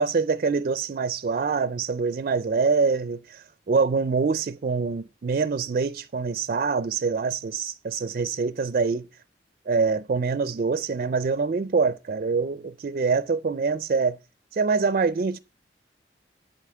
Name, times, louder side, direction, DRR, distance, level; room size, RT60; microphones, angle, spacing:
voice 1, 0.0-9.1 9.7-14.2 14.5-15.4, right 4 dB, 50° right, 0.4 m, -25 dB
8.4 x 8.1 x 4.4 m
head